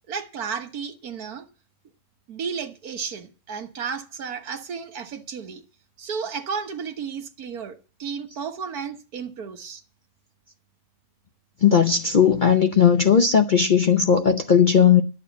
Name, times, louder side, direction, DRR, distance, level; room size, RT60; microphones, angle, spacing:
voice 1, 0.1-1.5 2.3-5.6 6.0-9.8, right 6 dB, 75° right, 1.7 m, -33 dB
voice 2, 11.6-15.0, left 7 dB, 50° left, 0.6 m, -17 dB
11.0 x 6.8 x 8.2 m
omnidirectional pair, 1.6 m